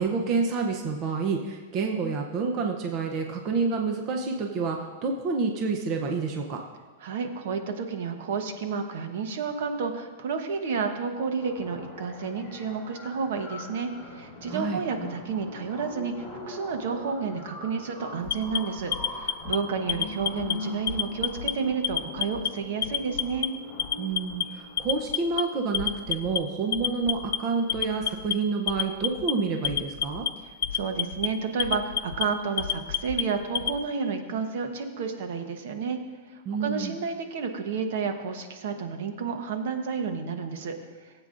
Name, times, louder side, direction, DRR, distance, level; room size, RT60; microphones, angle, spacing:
voice 1, 0.0-6.6 14.5-14.8 24.0-30.3 36.5-37.0, right 4 dB, 30° right, 2 dB, 0.6 m, -28 dB
voice 2, 7.0-23.5 30.7-36.0 36.3-40.8, right 5 dB, 60° right, 6 dB, 1.0 m, -31 dB
sound 1, 11.3-25.3, left 2 dB, 10° left, 3.6 m, -42 dB
Alarm, 18.3-19.6 19.9-20.5 20.9-21.5 21.8-22.5 22.8-23.5 23.8-24.4 24.8-25.4 25.7-26.4 26.7-27.4 27.7-28.3 28.7-29.3 29.6-30.3 30.6-31.3 31.6-32.2 32.6-33.8, left 10 dB, 85° left, 0.4 m, -28 dB
19.0 x 8.1 x 2.5 m, 1.4 s
supercardioid pair, 170°, 0 cm